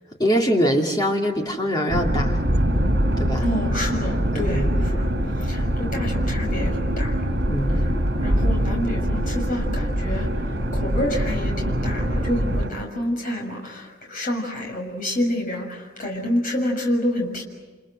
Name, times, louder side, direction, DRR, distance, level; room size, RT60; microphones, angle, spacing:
voice 1, 0.2-2.4 3.2-3.5 4.3-4.9 7.5-7.8, equal, 25° left, 1 dB, 2.7 m, -23 dB
sound 1, 1.9-12.7, equal, 75° right, 2.9 m, -23 dB
voice 2, 3.4-4.6 4.9-5.1 5.4-7.1 8.2-10.3 10.7-17.4, left 1 dB, 45° left, 0 dB, 6.5 m, -28 dB
29.5 x 27.5 x 6.3 m, 1.3 s
head